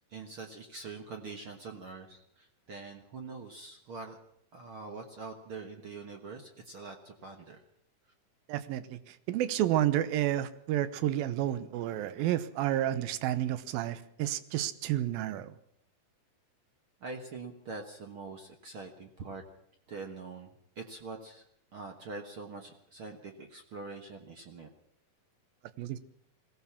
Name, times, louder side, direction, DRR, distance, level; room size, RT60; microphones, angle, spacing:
voice 1, 0.1-4.2 4.5-7.6 17.0-19.4 19.9-21.4 21.7-24.7, right 4 dB, 50° right, 4 dB, 1.7 m, -44 dB
voice 2, 8.5-9.0 9.3-15.5 25.8-26.0, right 12 dB, 85° right, 14 dB, 2.8 m, -30 dB
21.5 x 17.0 x 7.2 m, 0.69 s
omnidirectional pair, 4.0 m